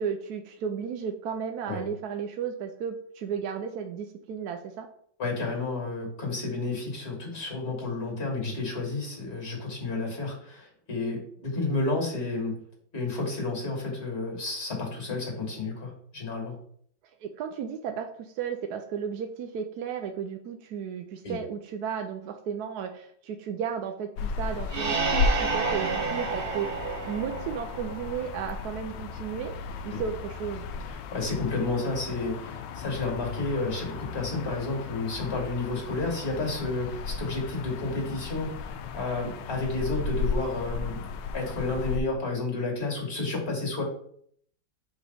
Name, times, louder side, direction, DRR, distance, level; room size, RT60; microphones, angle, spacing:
voice 1, 0.0-4.9 17.2-29.6 29.8-30.6, right 7 dB, 70° right, 5 dB, 1.0 m, -34 dB
voice 2, 5.2-12.6 12.9-16.6 21.2-21.4 29.9-30.0 30.9-41.0 41.3-43.8, left 3 dB, 35° left, 0 dB, 1.9 m, -31 dB
sound 1, 24.2-42.0, left 4 dB, 75° left, 1.2 m, -35 dB
sound 2, 24.7-28.3, right 4 dB, 50° right, 0.6 m, -30 dB
5.0 x 3.9 x 5.3 m, 0.65 s
omnidirectional pair, 2.0 m